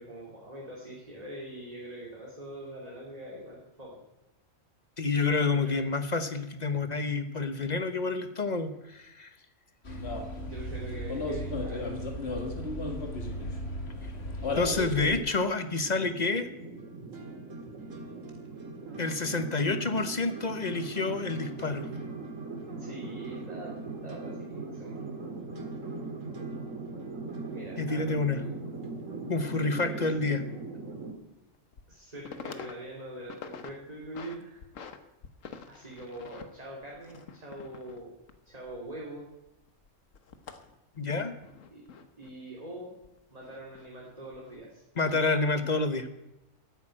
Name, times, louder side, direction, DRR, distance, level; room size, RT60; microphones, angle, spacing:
voice 1, 0.0-4.0 5.5-5.8 10.4-11.9 22.8-23.8 24.0-25.0 27.5-28.5 29.6-30.0 31.9-34.6 35.7-38.2 38.4-39.2 41.7-41.9 42.2-42.9 43.3-44.8, right 1 dB, 30° right, -3 dB, 2.7 m, -43 dB
voice 2, 5.0-9.3 14.5-16.5 19.0-21.9 27.8-28.4 29.3-30.4 41.0-41.3 45.0-46.1, left 3 dB, 40° left, 10 dB, 1.0 m, -28 dB
sound 1, 9.8-15.2, left 1 dB, 55° left, 2.2 m, -34 dB
sound 2, 15.8-31.1, right 3 dB, 90° right, 2.3 m, -40 dB
sound 3, 27.5-27.6 28.0-28.1 30.3-30.5 30.9-31.0 31.5-31.9 32.2-32.7 33.1-33.7 34.0-35.0 35.2-39.2 39.5-42.3 43.0-43.9 44.3-44.6, left 6 dB, 90° left, 1.5 m, -47 dB
12.5 x 8.8 x 8.7 m, 0.94 s
omnidirectional pair, 1.3 m